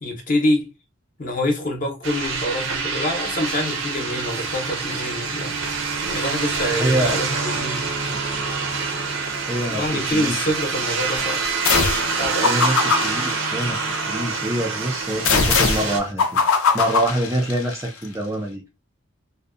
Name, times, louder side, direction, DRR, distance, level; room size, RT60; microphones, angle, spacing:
voice 1, 0.0-0.7 1.2-5.6 6.0-7.9 9.7-11.4 12.2-12.6, left 1 dB, 40° left, 0.7 m, -26 dB
sound 1, 2.0-16.0, right 4 dB, 70° right, 0.6 m, -26 dB
voice 2, 6.8-7.2 9.5-10.4 12.4-16.4 16.7-18.6, right 1 dB, 15° right, 0.4 m, -25 dB
sound 2, 11.7-12.1 12.4-14.2 15.3-17.9, left 5 dB, 80° left, 0.5 m, -21 dB
2.6 x 2.1 x 2.4 m
head